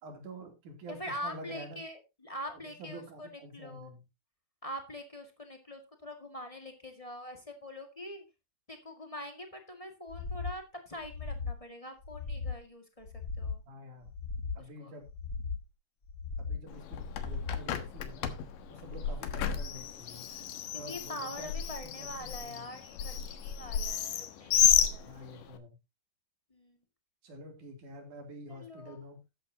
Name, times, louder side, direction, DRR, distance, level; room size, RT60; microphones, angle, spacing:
voice 1, 0.0-1.8 2.5-4.0 13.7-14.1 14.6-15.1 16.4-18.3 18.7-20.3 20.7-21.5 21.8-22.7 25.0-25.8 27.2-29.2, equal, 65° right, 5 dB, 4.3 m, -48 dB
voice 2, 0.9-3.3 3.5-4.0 4.6-8.2 8.7-13.1 13.4-13.6 14.8-14.9 20.2-25.2 26.5-26.8 28.5-29.1, equal, 15° left, 4 dB, 1.2 m, -44 dB
sound 1, 10.1-10.6 11.0-11.6 12.0-12.6 13.0-13.6 14.0-14.6 15.0-15.6 16.0-16.6 17.0-17.6, left 4 dB, 35° left, 2.3 m, -37 dB
Bird, 16.7-25.6, left 9 dB, 80° left, 2.9 m, -32 dB
13.5 x 10.0 x 2.8 m, 0.25 s
omnidirectional pair, 3.8 m